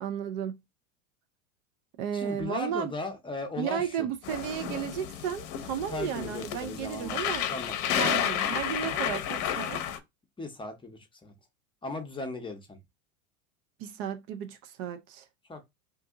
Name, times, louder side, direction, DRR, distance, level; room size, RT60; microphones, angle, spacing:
voice 1, 0.0-0.6 2.0-2.9 3.6-7.4 8.0-9.8 13.8-15.2, right 9 dB, 55° right, 0.5 m, -33 dB
voice 2, 2.1-4.1 5.9-7.2 7.5-8.2 8.8-9.1 10.4-11.3 11.8-12.8 15.5-15.6, left 3 dB, 10° left, 0.7 m, -37 dB
sound 1, 4.2-10.0, left 10 dB, 45° left, 0.7 m, -31 dB
2.6 x 2.6 x 3.5 m
hypercardioid pair, 110°, 42 cm